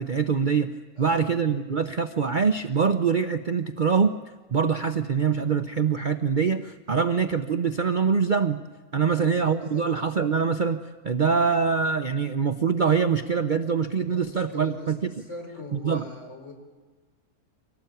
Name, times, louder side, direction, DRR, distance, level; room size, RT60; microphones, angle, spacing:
voice 1, 0.0-4.1 4.5-8.6 8.9-10.8 11.0-15.0 15.7-16.0, right 6 dB, 40° right, 9 dB, 0.8 m, -24 dB
voice 2, 1.0-1.3 9.1-9.8 13.9-16.5, left 1 dB, 50° left, 1 dB, 5.8 m, -42 dB
25.0 x 18.0 x 9.2 m, 1.3 s
omnidirectional pair, 1.6 m